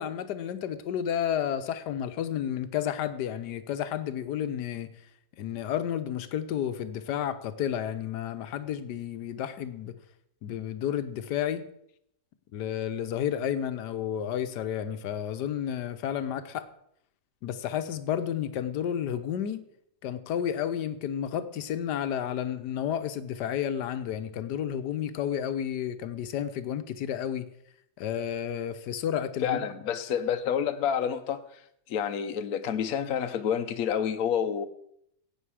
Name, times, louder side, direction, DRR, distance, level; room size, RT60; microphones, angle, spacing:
voice 1, 0.0-4.9 5.4-9.9 10.4-11.7 12.5-16.7 17.4-19.6 20.0-27.5 28.0-29.7, left 9 dB, 85° left, 1.4 m, -31 dB
voice 2, 29.4-31.4 31.9-34.7, left 8 dB, 65° left, 1.1 m, -28 dB
16.0 x 8.9 x 4.8 m
omnidirectional pair, 1.7 m